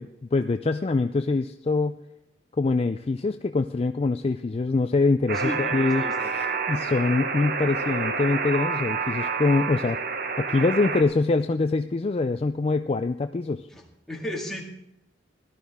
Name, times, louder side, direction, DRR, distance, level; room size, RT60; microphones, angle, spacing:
voice 1, 0.0-2.0 2.6-10.0 10.4-13.7, left 3 dB, 30° left, 8 dB, 0.3 m, -24 dB
voice 2, 5.3-6.3 13.7-14.6, equal, ahead, -1 dB, 2.0 m, -34 dB
Alarm, 5.3-11.0, right 4 dB, 50° right, 1.0 m, -28 dB
17.0 x 12.5 x 3.6 m, 0.87 s
head